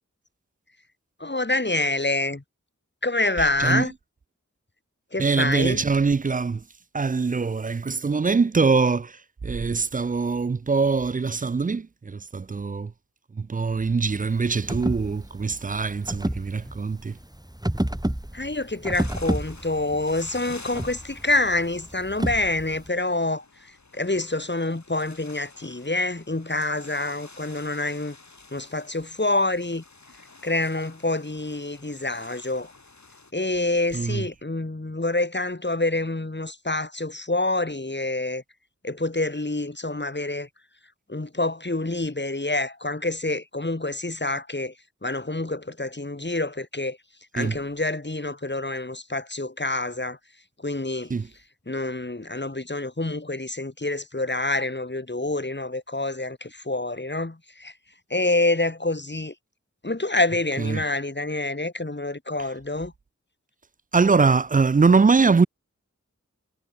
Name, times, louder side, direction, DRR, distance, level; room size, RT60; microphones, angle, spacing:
voice 1, 1.2-2.4 3.0-3.9 5.1-5.8 18.3-28.2 28.5-29.8 30.4-32.7 33.3-38.4 38.8-40.5 41.1-44.7 45.0-47.0 47.3-50.2 50.6-51.1 51.7-57.7 58.1-59.3 59.8-62.9, left 2 dB, 35° left, 3.0 m, -27 dB
voice 2, 5.2-6.6 6.9-9.2 9.4-12.9 13.4-17.2 33.9-34.2 47.4-47.6 51.1-51.3 60.6-60.8 63.9-65.5, right 4 dB, 30° right, 0.4 m, -22 dB
sound 1, 14.0-22.9, right 1 dB, 15° right, 3.4 m, -31 dB
sound 2, 18.9-33.3, left 3 dB, 65° left, 3.1 m, -49 dB
wide cardioid pair, 40°, 30 cm